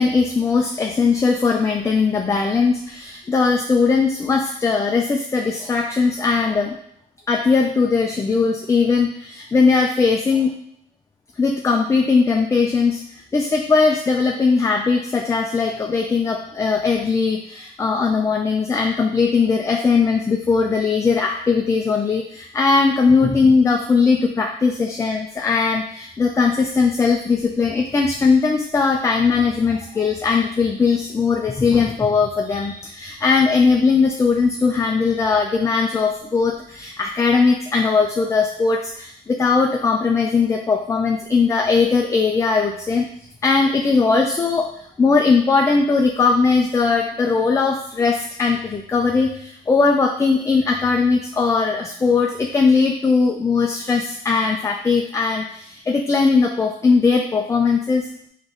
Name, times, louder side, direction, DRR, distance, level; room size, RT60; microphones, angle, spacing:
voice 1, 0.0-6.8 7.3-10.5 11.4-43.1 43.4-44.7 45.0-58.1, left 4 dB, 15° left, 2 dB, 0.4 m, -19 dB
3.8 x 3.0 x 3.8 m, 0.69 s
cardioid pair, 110°, 17 cm